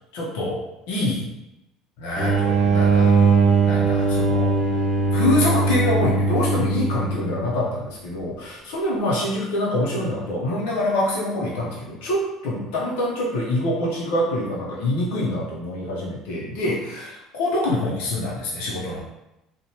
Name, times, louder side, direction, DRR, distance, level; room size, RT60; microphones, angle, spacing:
voice 1, 0.1-1.3 2.0-3.1 3.6-4.5 5.1-19.0, left 1 dB, 85° left, -4 dB, 0.6 m, -25 dB
sound 1, 2.2-7.5, right 4 dB, 20° right, 0.8 m, -20 dB
2.9 x 2.1 x 2.7 m, 0.92 s
supercardioid pair, 105°, 0 cm